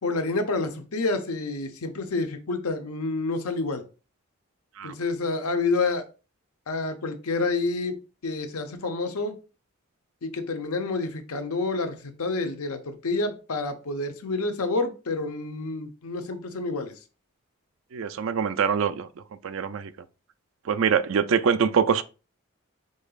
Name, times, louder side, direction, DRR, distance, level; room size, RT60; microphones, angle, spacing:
voice 1, 0.0-3.8 4.8-6.0 6.7-8.0 8.2-9.4 10.2-16.9, left 3 dB, 85° left, 0.8 m, -28 dB
voice 2, 17.9-19.1 19.4-19.9 20.7-22.0, right 6 dB, 65° right, 0.4 m, -24 dB
5.2 x 3.8 x 2.4 m
head